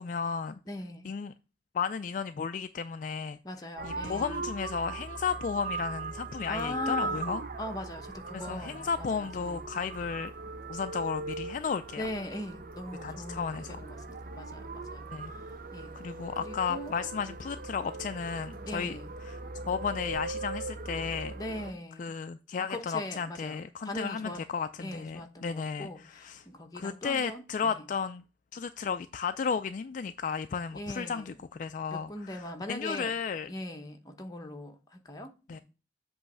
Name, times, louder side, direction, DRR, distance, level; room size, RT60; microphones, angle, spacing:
voice 1, 0.0-0.6 1.0-1.3 1.7-3.4 3.8-7.4 8.3-10.3 10.7-12.1 13.0-13.8 15.1-15.3 16.0-19.0 19.2-19.4 19.7-21.3 22.0-26.5 26.7-28.2 28.5-33.5 35.5-35.6, left 6 dB, 45° left, 0.3 m, -34 dB
voice 2, 0.7-1.1 3.4-4.5 6.5-7.3 7.6-9.6 12.0-15.1 15.7-15.9 16.4-17.0 18.7-19.1 21.4-22.1 22.7-24.4 24.8-27.8 30.7-31.3 31.9-33.1 33.5-35.6, left 1 dB, 20° left, 1.0 m, -40 dB
sound 1, 3.8-21.7, right 2 dB, 50° right, 0.7 m, -39 dB
7.9 x 3.1 x 5.9 m
head